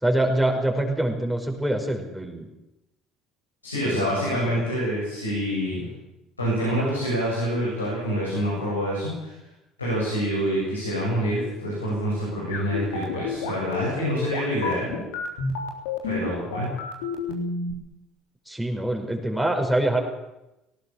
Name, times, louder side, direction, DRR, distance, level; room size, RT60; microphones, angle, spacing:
voice 1, 0.0-2.5 3.8-4.4 18.5-20.0, right 1 dB, ahead, 1 dB, 5.6 m, -25 dB
voice 2, 3.6-5.9 6.4-9.3 9.8-15.0 16.0-16.7, equal, 90° left, -6 dB, 7.7 m, -26 dB
sound 1, 12.5-17.7, left 4 dB, 70° left, 3.7 m, -30 dB
20.0 x 18.5 x 7.5 m, 0.92 s
figure-of-eight pair, 60°, 0 cm